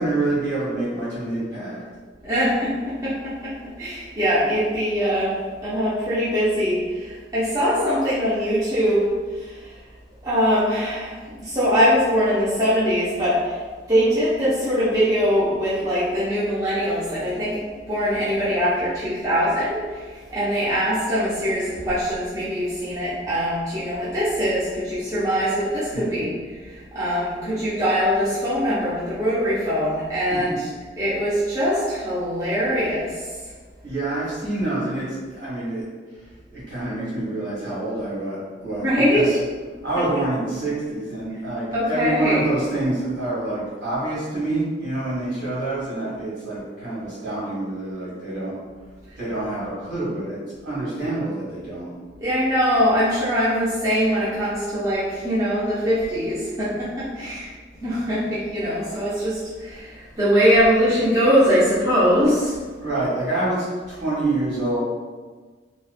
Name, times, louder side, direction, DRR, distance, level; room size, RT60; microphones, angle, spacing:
voice 1, 0.0-1.8 25.9-26.3 30.3-30.4 33.8-35.8 36.5-38.4 38.6-38.9 39.1-39.3 39.8-48.5 49.2-51.9 62.8-64.8, right 2 dB, 60° right, -9 dB, 1.4 m, -26 dB
voice 2, 2.2-5.4 5.6-9.8 10.2-11.2 11.4-13.6 13.9-17.6 17.9-26.3 26.6-30.7 31.0-33.3 38.8-39.4 41.7-42.4 52.2-57.5 57.8-62.6, equal, 20° right, -11 dB, 0.5 m, -22 dB
2.8 x 2.0 x 2.3 m, 1.4 s
head